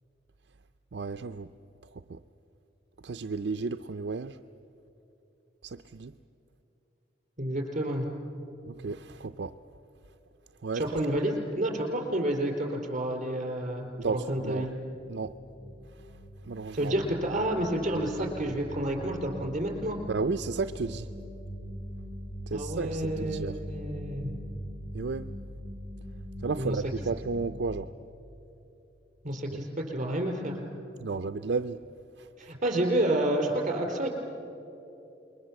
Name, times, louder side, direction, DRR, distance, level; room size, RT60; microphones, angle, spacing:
voice 1, 0.9-1.5 2.1-2.2 3.0-4.4 5.6-6.1 8.7-9.5 10.6-10.8 14.0-14.7 15.1-15.3 16.4-16.9 20.1-21.1 22.5-23.6 24.9-25.3 26.4-27.9 31.0-31.8 32.2-32.5, right 4 dB, 65° right, 0.5 m, -33 dB
voice 2, 7.4-8.1 10.7-14.7 16.7-20.0 22.5-24.3 26.5-26.8 29.2-30.6 32.4-34.1, right 1 dB, 40° right, 4.4 m, -30 dB
sound 1, 13.9-27.7, equal, 20° left, 4.2 m, -42 dB
28.0 x 22.5 x 7.6 m
head